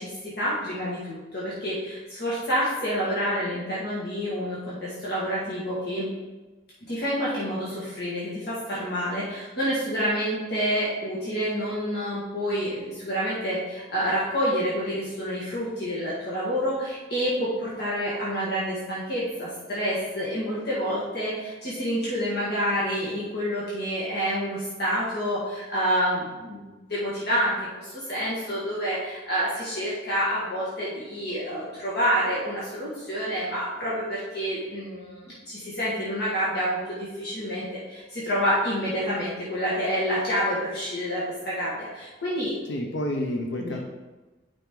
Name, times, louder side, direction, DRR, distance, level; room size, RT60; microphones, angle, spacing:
voice 1, 0.0-6.1 6.9-26.6 26.9-42.5 43.6-43.8, equal, 60° left, -8 dB, 1.9 m, -28 dB
voice 2, 42.7-43.8, left 1 dB, 80° left, 2 dB, 0.9 m, -29 dB
8.6 x 5.5 x 3.8 m, 1.2 s
head